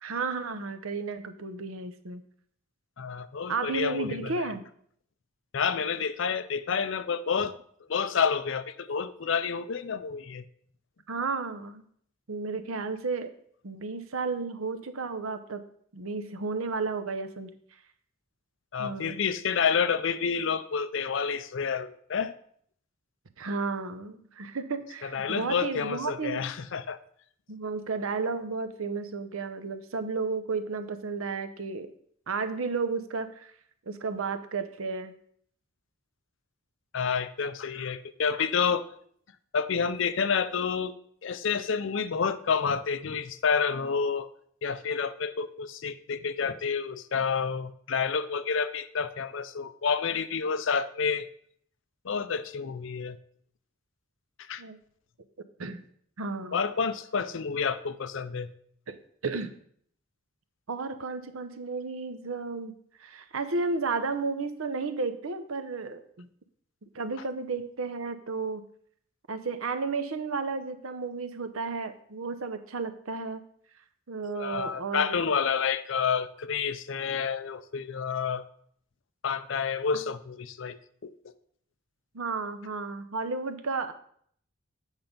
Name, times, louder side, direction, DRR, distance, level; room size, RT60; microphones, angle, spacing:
voice 1, 0.0-2.2 3.5-4.6 11.1-11.8 12.3-13.3 13.6-15.6 15.9-17.5 18.8-19.2 23.4-26.4 27.5-31.9 32.3-33.5 33.9-35.1 54.6-54.8 55.6-55.8 56.2-56.6 58.9-59.0 59.2-59.5 60.7-62.7 63.0-66.3 66.9-68.6 69.3-73.4 74.1-75.2 82.1-83.9, right 4 dB, 80° right, 10 dB, 0.7 m, -33 dB
voice 2, 3.0-4.5 5.5-7.5 7.9-10.4 18.7-22.3 25.0-27.0 36.9-38.8 39.5-41.0 41.2-44.3 44.6-51.3 52.0-53.2 54.4-54.6 56.5-58.5 74.2-78.5 79.2-81.1, left 6 dB, 60° left, 13 dB, 0.5 m, -29 dB
8.1 x 5.5 x 5.2 m, 0.63 s
head